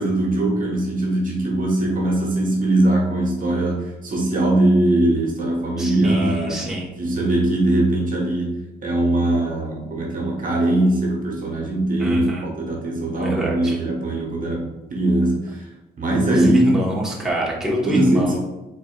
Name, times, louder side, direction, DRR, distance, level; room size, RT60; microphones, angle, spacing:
voice 1, 0.0-6.6 7.0-15.7 16.0-16.8 17.8-18.4, right 1 dB, 45° right, -2 dB, 1.3 m, -21 dB
voice 2, 5.8-6.9 12.0-12.5 13.2-13.8 16.3-18.4, right 1 dB, 5° right, -5 dB, 1.2 m, -26 dB
4.9 x 4.4 x 2.4 m, 1.0 s
cardioid pair, 90°, 20 cm